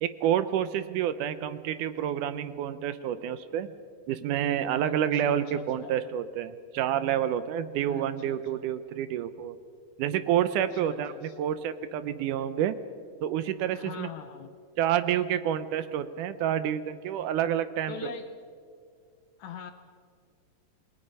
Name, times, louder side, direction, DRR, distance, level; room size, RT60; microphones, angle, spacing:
voice 1, 0.0-3.7 4.1-9.6 10.0-12.8 13.2-14.1 14.8-18.2, right 10 dB, 75° right, 13 dB, 2.0 m, -28 dB
voice 2, 4.8-6.1 7.9-8.6 10.5-11.4 13.7-14.6 17.9-18.3 19.4-19.7, left 7 dB, 70° left, 8 dB, 1.9 m, -44 dB
28.0 x 20.0 x 5.5 m, 2.2 s
omnidirectional pair, 4.2 m